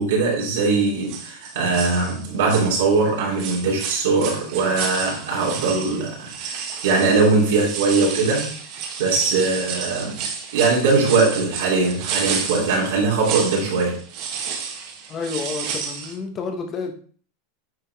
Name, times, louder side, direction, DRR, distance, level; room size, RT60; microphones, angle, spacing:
voice 1, 0.0-8.5 9.0-10.2 10.5-14.0, right 4 dB, 80° right, -3 dB, 3.3 m, -21 dB
sound 1, 0.6-0.8 1.1-3.1 3.4-16.1, right 6 dB, 55° right, 1.8 m, -31 dB
voice 2, 15.1-16.9, left 4 dB, 30° left, 4 dB, 1.4 m, -30 dB
9.5 x 4.2 x 3.5 m, 0.43 s
supercardioid pair, 120°, 0 cm